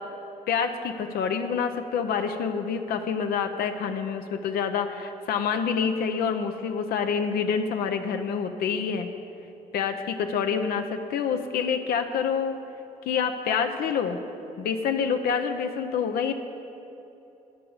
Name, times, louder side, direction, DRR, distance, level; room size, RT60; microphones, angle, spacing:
voice 1, 0.5-9.1 9.7-12.6 13.1-14.2 14.6-16.3, left 6 dB, 75° left, 6 dB, 0.6 m, -27 dB
9.4 x 5.4 x 7.0 m, 3.0 s
supercardioid pair, 75°, 16 cm